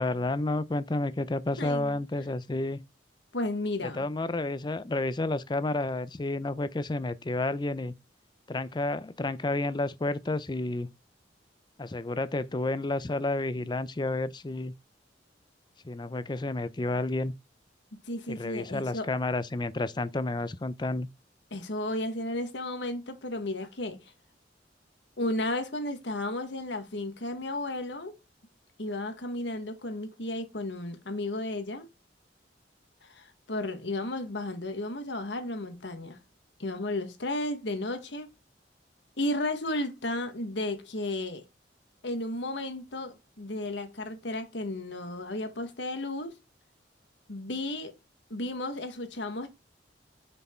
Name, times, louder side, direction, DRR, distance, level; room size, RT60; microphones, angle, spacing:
voice 1, 0.0-2.8 3.8-7.9 8.5-10.9 11.8-14.7 15.8-17.3 18.3-21.1, left 2 dB, 25° left, 0.5 m, -30 dB
voice 2, 1.6-2.0 3.3-4.0 17.9-19.1 21.5-24.0 25.2-28.2 28.8-31.9 33.0-36.2 36.6-38.3 39.2-41.4 42.0-46.4 47.3-47.9 48.3-49.5, left 1 dB, 80° left, 1.6 m, -33 dB
6.7 x 4.5 x 4.4 m
head